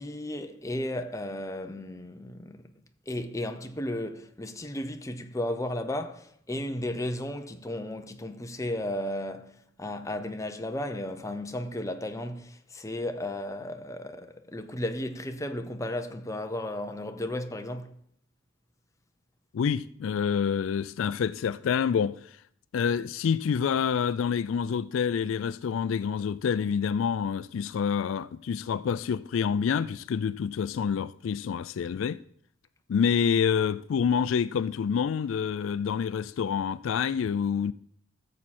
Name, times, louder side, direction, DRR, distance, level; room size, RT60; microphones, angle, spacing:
voice 1, 0.0-2.6 3.1-17.9, left 1 dB, 15° left, 0.7 m, -34 dB
voice 2, 19.5-22.2 22.7-32.2 32.9-37.7, left 7 dB, 80° left, 0.3 m, -27 dB
13.5 x 7.4 x 4.3 m
head